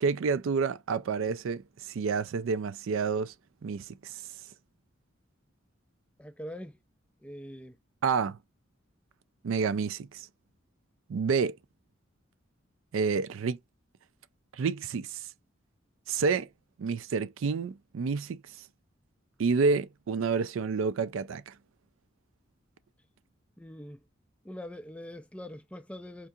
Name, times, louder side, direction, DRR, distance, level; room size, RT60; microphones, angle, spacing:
voice 1, 0.0-3.3 3.6-4.2 8.0-8.4 9.4-10.3 11.1-11.6 12.9-13.6 14.5-15.3 16.1-16.5 16.8-18.4 19.4-21.5, right 5 dB, 75° right, 0.4 m, -29 dB
voice 2, 6.2-6.8 7.2-7.8 23.6-24.0 24.4-26.3, left 1 dB, 5° left, 0.3 m, -43 dB
4.5 x 2.7 x 2.3 m
head